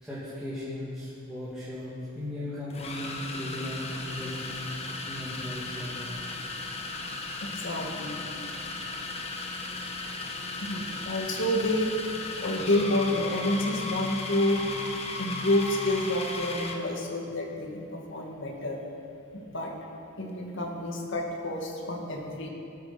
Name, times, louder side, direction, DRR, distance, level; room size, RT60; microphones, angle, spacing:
voice 1, 0.0-4.7 5.0-6.1 9.7-9.8, left 1 dB, 5° right, -12 dB, 2.7 m, -37 dB
sound 1, 1.5-1.6 2.7-16.9, left 3 dB, 30° left, 1.2 m, -36 dB
voice 2, 7.4-8.2 10.6-11.9 12.4-18.8 19.3-19.7 20.2-22.5, left 1 dB, 60° left, 0 dB, 2.0 m, -29 dB
18.5 x 8.7 x 5.9 m, 2.5 s
head